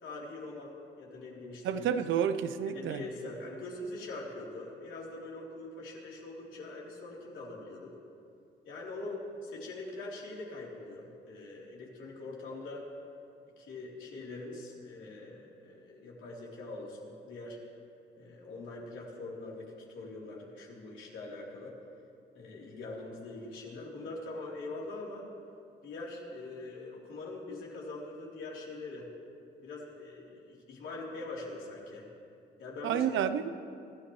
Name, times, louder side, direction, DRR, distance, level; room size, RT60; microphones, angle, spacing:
voice 1, 0.0-1.9 2.7-7.9 8.6-12.9 13.6-17.6 18.1-21.7 22.3-25.3 25.8-29.1 29.6-32.1 32.6-33.1, left 2 dB, 80° left, -4 dB, 3.5 m, -43 dB
voice 2, 1.6-3.0 32.8-33.5, right 8 dB, 75° right, 11 dB, 0.7 m, -30 dB
25.0 x 13.0 x 3.2 m, 2.4 s
cardioid pair, 90°, 20 cm